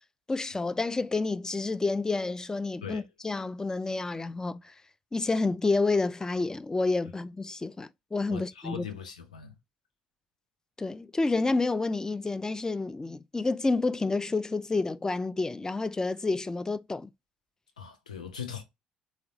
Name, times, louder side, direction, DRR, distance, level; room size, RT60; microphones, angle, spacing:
voice 1, 0.3-4.7 5.1-8.9 10.8-17.1, left 3 dB, 15° left, 0.3 m, -29 dB
voice 2, 8.3-9.5 17.8-18.6, left 7 dB, 85° left, 0.5 m, -40 dB
3.7 x 2.1 x 2.7 m
figure-of-eight pair, 50°, 4 cm